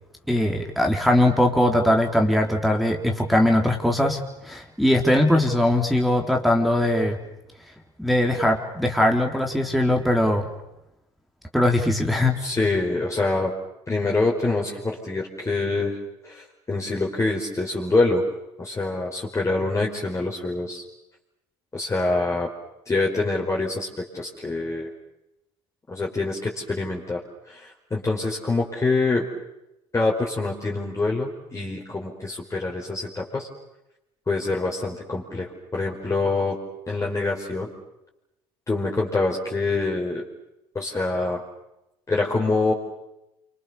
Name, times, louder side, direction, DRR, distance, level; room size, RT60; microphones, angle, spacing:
voice 1, 0.3-7.2 8.0-10.5 11.5-12.4, left 1 dB, ahead, 1 dB, 3.8 m, -21 dB
voice 2, 12.4-13.5 13.9-16.0 16.2-18.3 18.6-20.8 21.7-22.5 22.9-24.9 25.9-29.2 29.9-33.5 34.3-36.6 36.9-37.7 38.7-40.2 40.7-41.4 42.1-42.7, left 3 dB, 25° left, -3 dB, 5.0 m, -25 dB
28.5 x 25.5 x 7.0 m, 0.89 s
supercardioid pair, 75°, 13 cm